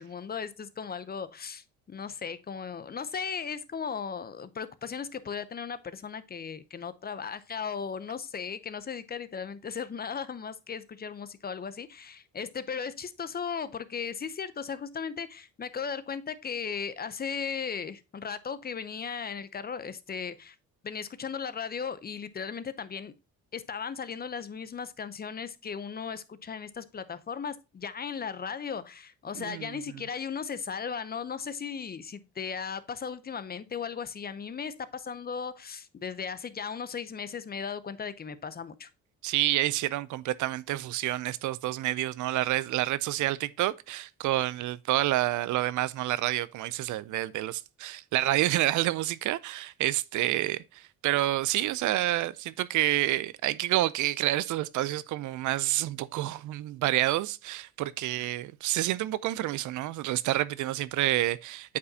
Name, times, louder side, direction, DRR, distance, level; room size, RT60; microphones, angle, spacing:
voice 1, 0.0-20.6 20.8-23.1 23.5-38.9, left 6 dB, 30° left, 0.6 m, -36 dB
voice 2, 29.4-29.8 39.2-61.8, right 15 dB, 75° right, 0.5 m, -28 dB
8.4 x 4.7 x 2.7 m
cardioid pair, 90°, 30 cm